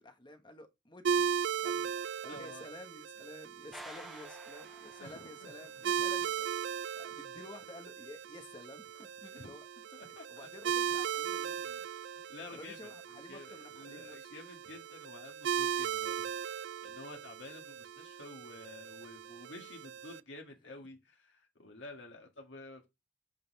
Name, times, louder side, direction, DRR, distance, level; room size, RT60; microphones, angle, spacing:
voice 1, 0.0-9.6 10.3-11.8 12.3-14.3, left 1 dB, 25° left, 1.3 m, -52 dB
sound 1, 1.0-20.2, right 8 dB, 70° right, 0.4 m, -38 dB
voice 2, 2.3-2.7 5.0-5.5 5.9-6.0 7.1-7.2 9.3-9.5 9.9-10.5 11.8-22.9, left 2 dB, 75° left, 1.8 m, -51 dB
sound 2, 3.7-5.7, equal, ahead, 0.4 m, -51 dB
9.0 x 4.0 x 5.4 m
head